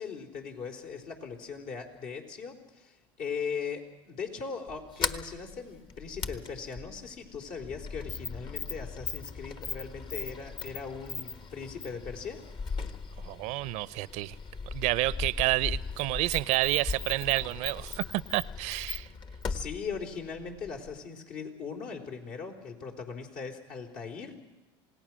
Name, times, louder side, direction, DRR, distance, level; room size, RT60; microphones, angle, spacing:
voice 1, 0.0-12.4 19.5-24.5, left 5 dB, 65° left, 2 dB, 4.3 m, -39 dB
Sliding door, 4.7-21.0, left 4 dB, 40° left, 1.4 m, -38 dB
voice 2, 13.2-14.4 14.7-19.1, right 19 dB, 65° right, 21 dB, 0.6 m, -29 dB
27.5 x 18.0 x 6.3 m, 1.1 s
supercardioid pair, 85°, 13 cm